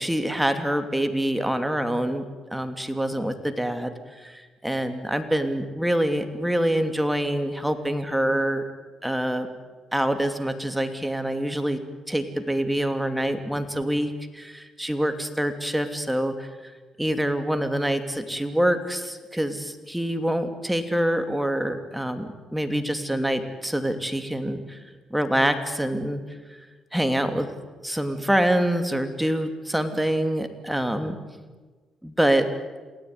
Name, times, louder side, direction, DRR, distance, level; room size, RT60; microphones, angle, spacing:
voice 1, 0.0-2.2 2.5-8.6 9.0-9.5 9.9-11.8 12.1-16.7 17.0-24.8 25.1-26.2 26.9-27.5 27.8-31.2 32.0-32.5, right 1 dB, 5° right, 7 dB, 2.9 m, -25 dB
28.5 x 18.5 x 9.9 m, 1.3 s
cardioid pair, 90°, 0 cm